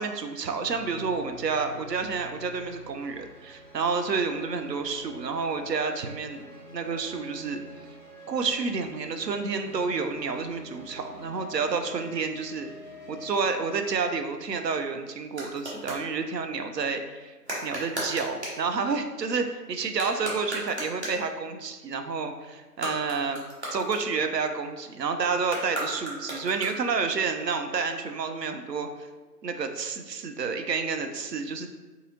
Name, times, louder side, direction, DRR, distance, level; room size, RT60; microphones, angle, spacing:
voice 1, 0.0-6.4 6.7-7.6 8.3-12.7 13.1-17.4 17.6-23.4 23.7-29.1 29.4-31.7, right 5 dB, 80° right, 7 dB, 0.6 m, -29 dB
sound 1, 0.6-14.1, right 1 dB, 60° right, 1.1 m, -46 dB
sound 2, 14.3-16.1 17.4-18.7 19.9-21.3 22.6-24.5 25.4-27.0, right 1 dB, 45° right, 0.9 m, -36 dB
3.8 x 2.7 x 2.8 m, 1.2 s
figure-of-eight pair, 165°, 49 cm